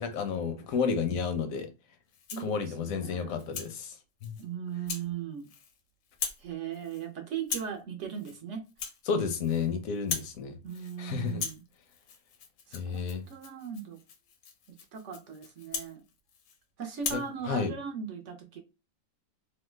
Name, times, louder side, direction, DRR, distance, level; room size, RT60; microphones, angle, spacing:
voice 1, 0.0-1.7 2.4-4.0 4.2-4.3 9.1-10.6 11.0-11.5 12.7-13.2 17.1-17.7, left 5 dB, 70° left, 0.8 m, -31 dB
Rattle (instrument), 2.1-2.5 3.0-3.7 4.2-4.4 4.9-5.1 5.4-5.8 6.1-6.5 6.7-7.1 7.4-7.8 8.1-8.4 8.7-9.7 9.9-10.4 10.7-11.0 11.3-16.6 16.9-17.3, left 6 dB, 90° left, 1.3 m, -39 dB
voice 2, 2.3-3.4 4.4-5.5 6.4-8.7 10.6-11.6 12.7-14.0 14.7-16.0 16.8-18.6, right 7 dB, 65° right, 0.7 m, -38 dB
3.0 x 2.1 x 3.1 m
omnidirectional pair, 1.8 m